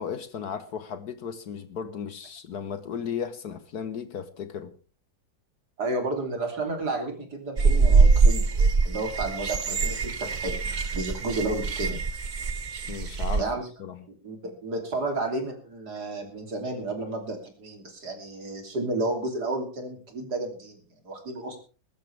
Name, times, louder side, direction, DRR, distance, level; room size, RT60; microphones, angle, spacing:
voice 1, 0.0-4.7 12.9-13.5 13.8-14.0, left 7 dB, 60° left, 1.5 m, -35 dB
voice 2, 5.8-8.4 8.9-12.0 13.4-13.7 14.2-21.6, right 2 dB, 55° right, 3.6 m, -32 dB
sound 1, 7.6-13.4, right 4 dB, 75° right, 0.4 m, -23 dB
22.0 x 12.5 x 3.4 m
omnidirectional pair, 2.0 m